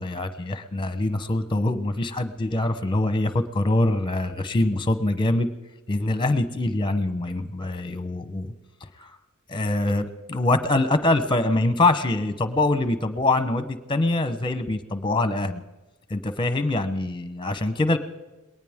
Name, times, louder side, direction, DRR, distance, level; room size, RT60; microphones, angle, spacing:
voice 1, 0.0-5.5 5.9-8.5 9.0-9.1 9.5-15.6 16.1-18.0, left 2 dB, 25° left, 11 dB, 1.0 m, -24 dB
21.0 x 18.5 x 3.7 m, 1.1 s
head